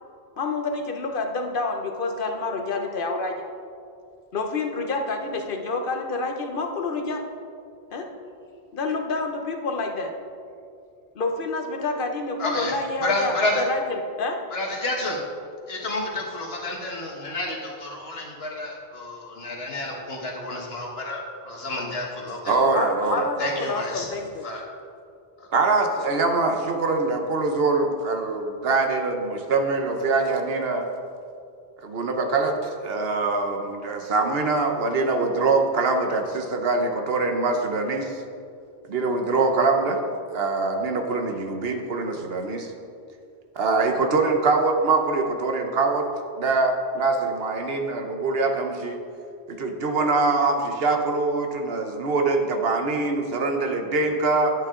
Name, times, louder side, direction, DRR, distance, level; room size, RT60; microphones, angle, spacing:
voice 1, 0.4-3.4 4.3-7.2 7.9-8.1 8.7-10.1 11.1-14.4 22.7-24.4, left 3 dB, 60° left, 4 dB, 1.0 m, -28 dB
voice 2, 12.4-12.7 13.0-13.6 14.5-15.2 15.7-22.5 23.4-24.1 24.4-24.6 25.4-25.5, left 2 dB, 75° left, -1 dB, 1.7 m, -30 dB
voice 3, 22.5-23.2 25.5-30.9 31.8-38.1 38.9-40.0 40.3-42.7 43.6-46.1 46.4-49.0 49.5-54.5, right 3 dB, 70° right, 4 dB, 1.1 m, -23 dB
10.5 x 8.7 x 3.8 m, 2.4 s
omnidirectional pair, 1.0 m